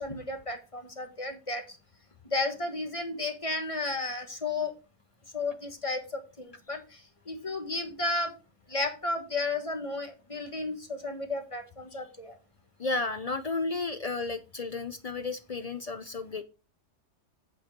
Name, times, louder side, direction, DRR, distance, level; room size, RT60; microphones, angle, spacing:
voice 1, 0.0-1.6 2.3-4.7 5.3-6.8 7.3-8.3 8.7-12.4, left 2 dB, 25° left, 4 dB, 1.3 m, -33 dB
voice 2, 12.8-16.4, left 3 dB, 45° left, 9 dB, 0.5 m, -33 dB
8.7 x 4.8 x 5.2 m, 0.33 s
omnidirectional pair, 1.3 m